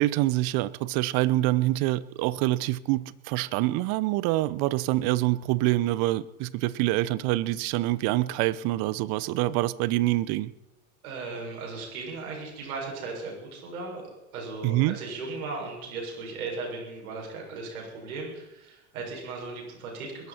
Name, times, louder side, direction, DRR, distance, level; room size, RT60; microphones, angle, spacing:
voice 1, 0.0-10.5 14.6-15.0, right 17 dB, 55° right, 18 dB, 0.9 m, -26 dB
voice 2, 11.0-20.3, right 3 dB, 75° right, 0 dB, 6.8 m, -37 dB
21.5 x 12.5 x 4.5 m, 0.97 s
hypercardioid pair, 80°, 43 cm